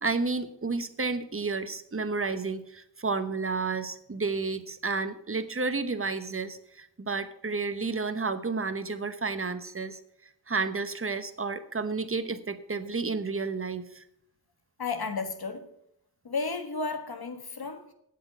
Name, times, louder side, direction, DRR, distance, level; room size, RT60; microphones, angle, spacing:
voice 1, 0.0-10.0 10.5-14.0, right 4 dB, 30° right, 1.0 m, -31 dB
voice 2, 14.8-15.7 16.2-17.9, left 4 dB, 55° left, 1.6 m, -33 dB
8.6 x 8.0 x 9.1 m
wide cardioid pair, 95°, 44 cm